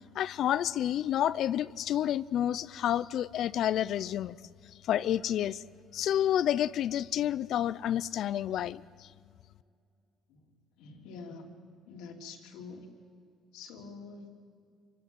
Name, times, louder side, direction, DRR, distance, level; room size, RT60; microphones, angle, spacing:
voice 1, 0.1-4.4 4.9-5.6 5.9-8.8, left 11 dB, 70° left, 17 dB, 0.6 m, -29 dB
voice 2, 10.8-11.5 11.9-12.9 13.5-14.3, left 4 dB, 85° left, 1 dB, 3.3 m, -46 dB
27.0 x 16.5 x 9.0 m, 2.3 s
supercardioid pair, 85°, 0 cm